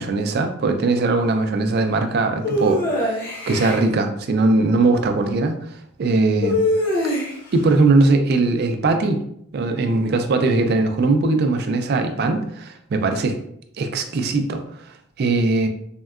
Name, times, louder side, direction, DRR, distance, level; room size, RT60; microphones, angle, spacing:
voice 1, 0.0-3.2 3.5-5.5 6.0-6.6 7.5-9.2 9.5-13.4 13.8-15.7, right 3 dB, 50° right, 6 dB, 0.3 m, -20 dB
sound 1, 2.4-3.8 6.4-7.6, left 1 dB, 45° left, 0.8 m, -22 dB
3.5 x 2.2 x 2.3 m, 0.72 s
head